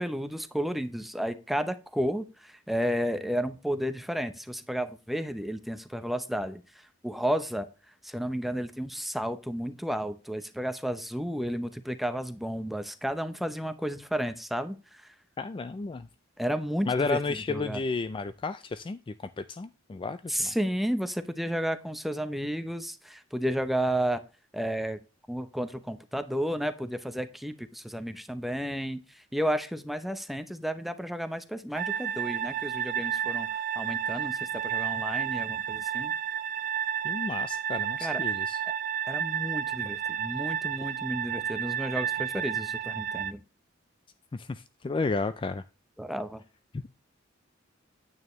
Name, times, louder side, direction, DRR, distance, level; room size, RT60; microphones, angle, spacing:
voice 1, 0.0-6.6 7.0-7.7 8.0-14.8 16.4-17.2 17.5-17.8 20.3-24.2 24.5-25.0 25.3-29.0 29.3-33.5 33.8-36.1 38.0-38.2 39.1-43.4 46.0-46.4, equal, ahead, 10 dB, 0.7 m, -32 dB
voice 2, 15.4-16.1 16.9-20.5 37.0-38.6 44.3-45.6, left 3 dB, 25° left, 13 dB, 0.3 m, -32 dB
sound 1, 31.7-43.3, right 9 dB, 45° right, 0.4 m, -31 dB
9.4 x 8.6 x 3.1 m, 0.33 s
head